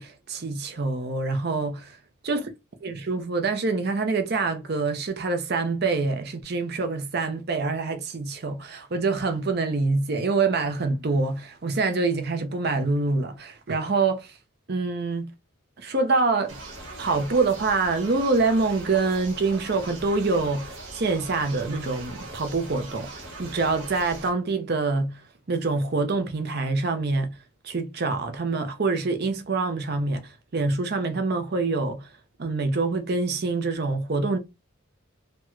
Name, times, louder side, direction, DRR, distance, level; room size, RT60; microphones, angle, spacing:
voice 1, 0.0-2.0 2.2-2.5 2.8-14.4 14.7-15.3 15.8-16.6 17.0-25.2 25.5-27.4 27.6-32.1 32.4-34.4, right 3 dB, 50° right, 0.6 m, -26 dB
sound 1, 16.5-24.3, right 2 dB, 65° right, 1.1 m, -40 dB
3.0 x 2.3 x 3.0 m
head